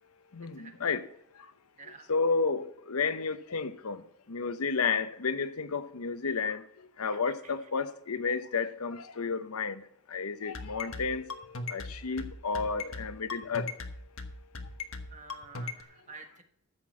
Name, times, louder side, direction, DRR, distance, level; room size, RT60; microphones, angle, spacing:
voice 1, 0.3-1.1 2.1-4.0 4.3-6.6 7.0-9.8 10.1-13.7, left 5 dB, 90° left, 0.8 m, -31 dB
voice 2, 1.8-2.1 7.1-7.5 12.1-12.2 15.1-16.4, right 4 dB, 35° right, 1.4 m, -50 dB
sound 1, 10.5-15.8, left 3 dB, 65° left, 1.2 m, -38 dB
14.0 x 6.0 x 7.3 m
head